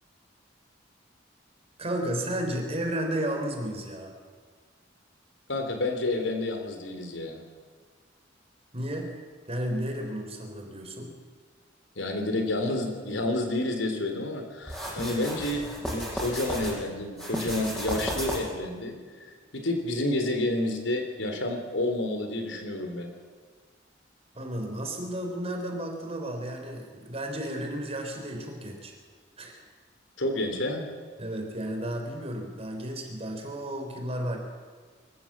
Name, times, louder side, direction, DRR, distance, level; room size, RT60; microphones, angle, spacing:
voice 1, 1.8-4.1 8.7-9.1 9.5-11.1 24.4-29.0 29.4-29.6 31.2-34.4, right 1 dB, 35° right, 3 dB, 3.7 m, -33 dB
voice 2, 5.5-7.4 12.0-18.9 19.5-23.1 30.2-30.8, left 1 dB, 90° left, 4 dB, 3.4 m, -29 dB
sound 1, 14.7-16.7 17.1-18.6, equal, 5° left, 6.6 m, -33 dB
24.5 x 14.0 x 7.4 m, 1.6 s
head